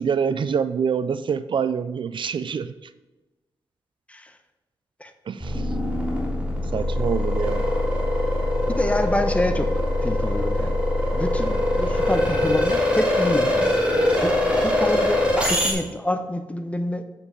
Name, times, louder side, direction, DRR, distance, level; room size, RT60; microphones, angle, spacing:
voice 1, 0.0-2.7 5.3-5.6 6.7-7.7, right 6 dB, 60° right, 13 dB, 0.4 m, -25 dB
sound 1, 5.4-15.7, left 1 dB, 10° right, 3.1 m, -22 dB
voice 2, 8.8-9.7 10.0-10.8 11.1-13.8 14.2-17.0, left 1 dB, 15° left, 7 dB, 1.1 m, -27 dB
8.1 x 5.9 x 5.1 m, 1.1 s
cardioid pair, 60°, 9 cm